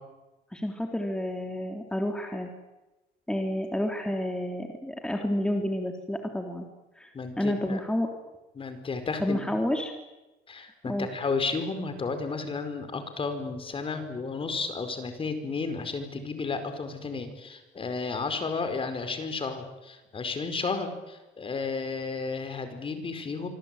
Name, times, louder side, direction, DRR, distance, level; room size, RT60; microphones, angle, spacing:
voice 1, 0.5-2.5 3.3-6.7 7.0-7.1 7.4-8.1 9.2-9.9 10.9-11.1, left 1 dB, 5° left, 3 dB, 3.5 m, -30 dB
voice 2, 7.1-7.8 8.5-9.4 10.5-23.5, left 4 dB, 30° left, 8 dB, 4.9 m, -32 dB
26.0 x 24.0 x 9.2 m, 1.0 s
cardioid pair, 110°, 17 cm